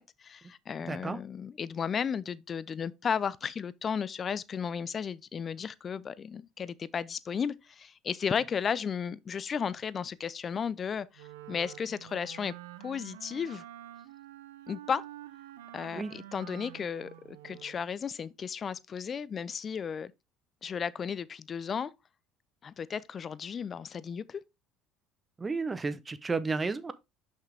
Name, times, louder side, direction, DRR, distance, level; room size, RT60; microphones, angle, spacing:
voice 1, 0.0-12.5 12.8-13.6 14.7-15.0 15.7-20.1 20.6-21.9 22.6-24.4, left 7 dB, 40° left, 0.5 m, -34 dB
voice 2, 0.8-1.2 15.9-16.1 25.4-26.9, right 4 dB, 25° right, 0.8 m, -32 dB
Wind instrument woodwind instrument, 11.1-17.8, right 13 dB, 90° right, 0.7 m, -48 dB
5.8 x 5.8 x 3.4 m
hypercardioid pair, 75°, 0 cm